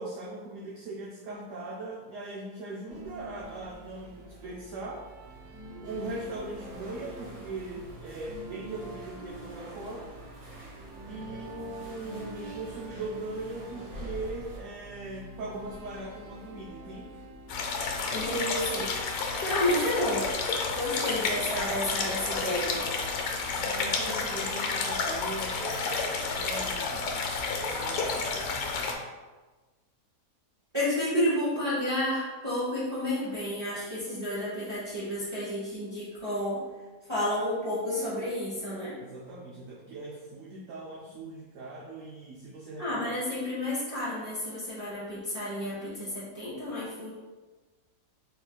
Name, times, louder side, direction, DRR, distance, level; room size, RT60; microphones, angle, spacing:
voice 1, 0.0-5.0 5.8-10.1 11.0-17.1 23.6-27.3 27.6-29.0 39.0-43.1, right 2 dB, 65° right, -3 dB, 0.8 m, -40 dB
sound 1, 2.9-18.0, right 2 dB, 85° right, 1.2 m, -46 dB
sound 2, 5.8-14.6, equal, 50° right, 1.2 m, -46 dB
sound 3, 17.5-28.9, left 4 dB, 80° left, 1.1 m, -30 dB
voice 2, 18.1-18.9 19.4-20.3 20.7-22.8 30.7-36.6 37.1-38.9 42.8-47.1, left 1 dB, 20° right, -10 dB, 1.1 m, -31 dB
4.3 x 3.8 x 2.3 m, 1.3 s
omnidirectional pair, 1.6 m